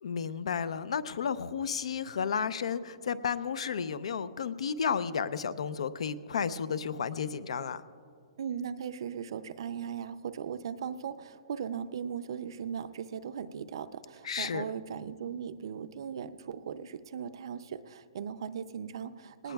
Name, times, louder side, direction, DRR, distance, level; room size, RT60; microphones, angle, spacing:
voice 1, 0.0-7.8 14.2-14.6 19.4-19.5, left 6 dB, 75° left, 15 dB, 0.6 m, -32 dB
voice 2, 8.4-19.5, right 7 dB, 50° right, 12 dB, 0.5 m, -38 dB
18.5 x 18.5 x 2.3 m, 2.3 s
hypercardioid pair, 180°, 3 cm